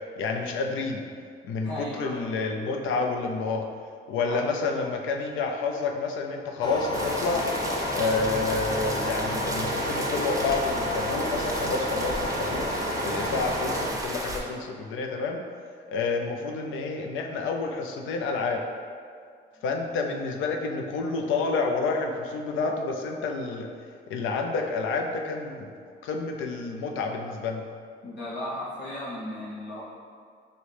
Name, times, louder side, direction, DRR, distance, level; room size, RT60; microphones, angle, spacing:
voice 1, 0.2-1.0 1.4-3.6 4.1-7.4 7.9-12.7 13.0-15.4 15.9-18.6 19.6-23.7 24.1-25.7 26.0-27.6, left 4 dB, 85° left, 2 dB, 0.5 m, -29 dB
voice 2, 1.6-2.3 4.2-4.5 4.8-5.0 28.0-29.8, left 1 dB, 65° left, -6 dB, 0.9 m, -36 dB
sound 1, 6.6-13.9, left 1 dB, 20° left, 0.7 m, -30 dB
sound 2, 6.9-14.4, right 1 dB, 15° right, 0.6 m, -34 dB
6.1 x 2.2 x 3.3 m, 2.1 s
cardioid pair, 90°, 20 cm